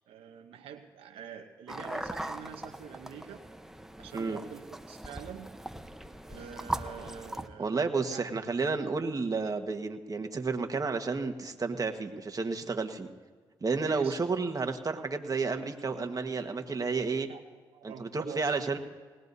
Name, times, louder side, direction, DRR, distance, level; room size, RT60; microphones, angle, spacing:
voice 1, 0.1-3.4 4.0-5.6 6.3-7.8 8.1-8.3 13.9-14.2 17.3-17.4 17.7-18.8, right 8 dB, 85° right, 5 dB, 0.9 m, -45 dB
sound 1, 1.7-7.5, right 1 dB, 5° right, 0.9 m, -40 dB
voice 2, 7.6-13.1 13.6-17.3 17.8-18.8, right 4 dB, 40° right, 5 dB, 1.4 m, -31 dB
20.0 x 18.0 x 2.7 m, 1.5 s
supercardioid pair, 55°, 10 cm